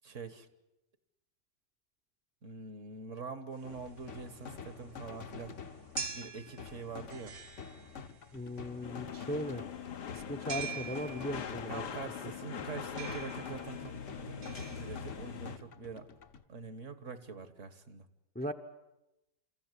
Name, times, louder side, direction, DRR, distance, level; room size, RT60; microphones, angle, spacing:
voice 1, 0.0-0.5 2.4-5.6 6.1-7.4 11.7-16.1 16.5-18.1, right 5 dB, 50° right, 12 dB, 1.6 m, -45 dB
sound 1, 3.6-16.4, left 5 dB, 50° left, 1.3 m, -48 dB
sound 2, 3.6-15.5, right 6 dB, 70° right, 2.2 m, -46 dB
voice 2, 8.3-9.6 10.1-11.8 18.3-18.5, equal, 5° left, 4 dB, 0.8 m, -38 dB
sound 3, 8.8-15.6, left 8 dB, 70° left, 1.7 m, -42 dB
28.5 x 14.5 x 9.7 m, 0.94 s
omnidirectional pair, 1.8 m